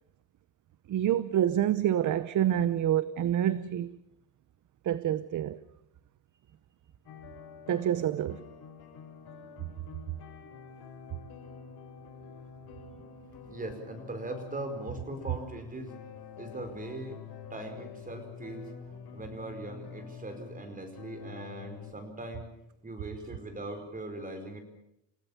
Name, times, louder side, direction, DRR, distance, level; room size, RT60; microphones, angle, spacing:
voice 1, 0.9-4.0 4.8-5.6 7.7-8.4, right 11 dB, 45° right, 16 dB, 0.8 m, -27 dB
sound 1, 7.1-21.9, left 6 dB, 60° left, 6.7 m, -47 dB
voice 2, 12.9-15.9 16.4-17.2 17.5-18.7 19.1-22.5 22.8-24.6, right 2 dB, 20° right, 7 dB, 4.8 m, -40 dB
29.5 x 17.0 x 7.2 m, 0.80 s
cardioid pair, 145°, 43 cm